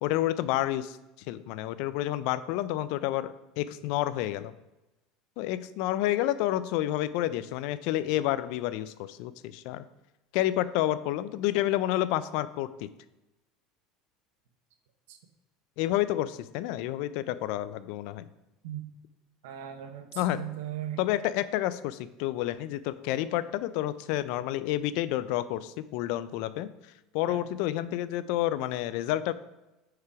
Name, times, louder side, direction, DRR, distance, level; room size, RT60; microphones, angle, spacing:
voice 1, 0.0-1.0 1.3-4.5 5.4-9.8 10.3-12.9 15.8-18.2 20.2-20.4 21.0-26.7 27.1-29.3, left 14 dB, 65° left, 15 dB, 0.3 m, -29 dB
voice 2, 19.4-21.0 27.3-27.5, right 11 dB, 90° right, 7 dB, 0.8 m, -38 dB
4.8 x 4.7 x 5.7 m, 0.99 s
supercardioid pair, 140°, 0 cm